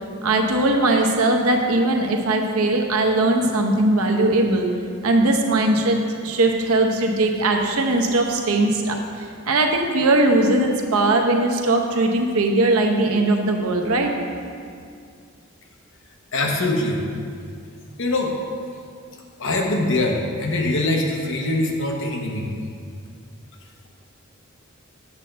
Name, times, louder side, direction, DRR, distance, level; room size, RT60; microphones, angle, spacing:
voice 1, 0.2-4.7 5.0-14.1, right 2 dB, 90° right, 2 dB, 0.8 m, -20 dB
voice 2, 16.3-17.0 18.0-18.4 19.4-22.5, left 2 dB, 60° left, 1 dB, 0.9 m, -23 dB
8.2 x 3.3 x 6.4 m, 2.3 s
head